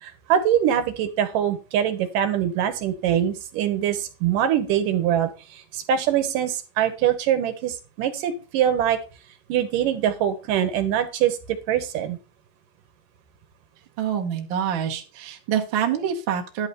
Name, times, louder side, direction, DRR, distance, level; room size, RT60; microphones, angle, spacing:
voice 1, 0.0-9.0 9.5-11.4 11.7-12.2, right 10 dB, 70° right, 9 dB, 2.5 m, -23 dB
voice 2, 14.0-16.7, right 8 dB, 55° right, 1 dB, 1.4 m, -26 dB
10.5 x 3.9 x 6.9 m, 0.32 s
omnidirectional pair, 4.1 m